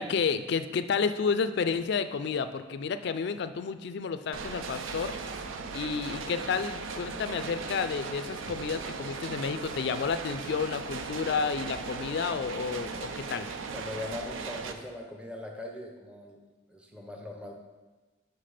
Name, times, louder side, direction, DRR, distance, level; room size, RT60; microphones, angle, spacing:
voice 1, 0.0-5.1 5.7-13.5, left 5 dB, 60° left, 11 dB, 0.4 m, -31 dB
sound 1, 4.3-14.7, right 4 dB, 90° right, 0.6 m, -38 dB
voice 2, 13.7-16.4 16.7-17.5, left 2 dB, 5° right, 1 dB, 0.6 m, -40 dB
5.8 x 5.7 x 4.9 m, 1.2 s
head